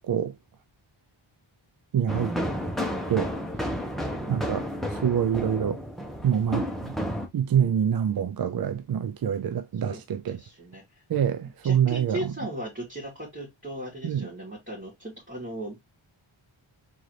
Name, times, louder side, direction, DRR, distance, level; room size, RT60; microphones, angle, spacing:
voice 1, 1.9-2.4 3.1-3.3 4.3-4.7 4.9-5.8 6.2-6.9 7.3-10.4 11.1-12.3 14.0-14.3, right 8 dB, 50° right, 0.4 m, -26 dB
sound 1, 2.1-7.3, equal, ahead, 1.0 m, -31 dB
voice 2, 4.1-5.2 9.8-10.0 10.3-10.8 11.6-15.8, right 1 dB, 25° right, 2.7 m, -37 dB
3.9 x 3.9 x 3.2 m
wide cardioid pair, 100°, 49 cm